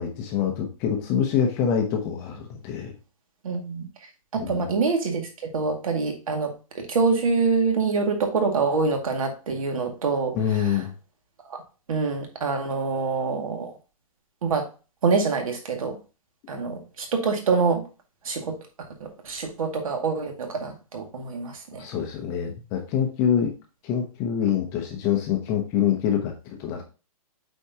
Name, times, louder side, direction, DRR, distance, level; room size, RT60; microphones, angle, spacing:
voice 1, 0.0-2.9 4.3-4.7 10.3-10.9 21.7-23.5 23.8-26.8, left 8 dB, 15° left, 3 dB, 0.7 m, -25 dB
voice 2, 3.4-3.9 4.3-5.3 5.5-10.8 11.5-11.6 11.9-13.7 14.4-14.7 15.0-16.0 16.5-17.8 18.2-18.6 19.2-21.9, right 4 dB, 65° right, 3 dB, 2.1 m, -25 dB
8.2 x 4.5 x 2.8 m, 0.33 s
hypercardioid pair, 170°, 19 cm